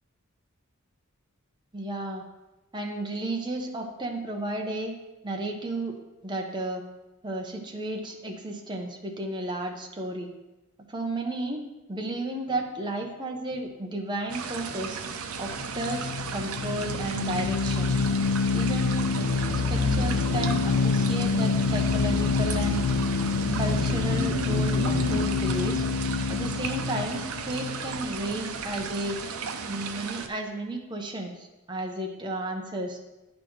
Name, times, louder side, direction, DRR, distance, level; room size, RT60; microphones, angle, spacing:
voice 1, 1.7-2.2 2.7-4.9 5.2-5.9 6.2-6.8 7.2-10.3 10.9-11.6 11.9-15.0 15.4-18.0 18.5-19.1 19.7-22.8 23.6-25.8 26.3-29.2 29.7-33.0, right 1 dB, 20° right, 2 dB, 0.9 m, -33 dB
sound 1, 14.3-30.3, right 5 dB, 85° right, 0.6 m, -35 dB
sound 2, 15.4-28.6, left 4 dB, 65° left, 0.4 m, -27 dB
sound 3, 19.1-25.2, equal, 50° right, 1.3 m, -35 dB
10.0 x 4.2 x 4.7 m, 1.0 s
head